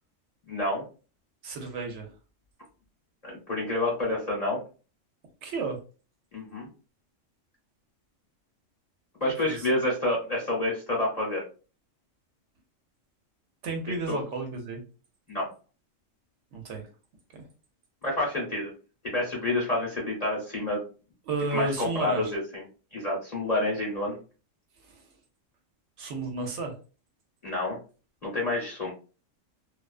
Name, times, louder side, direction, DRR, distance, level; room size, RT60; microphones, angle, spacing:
voice 1, 0.5-0.8 3.2-4.6 6.3-6.7 9.2-11.4 14.1-14.2 15.3-15.5 18.0-18.7 19.0-20.8 21.5-22.6 22.9-24.2 27.4-27.8 28.2-28.9, left 2 dB, 35° left, -4 dB, 0.8 m, -28 dB
voice 2, 1.4-2.1 5.4-5.8 9.4-9.7 13.6-14.8 16.5-16.9 17.3-17.5 21.3-22.3 24.8-25.0 26.0-26.8, right 3 dB, 70° right, 3 dB, 0.9 m, -32 dB
2.3 x 2.2 x 2.3 m, 0.35 s
omnidirectional pair, 1.3 m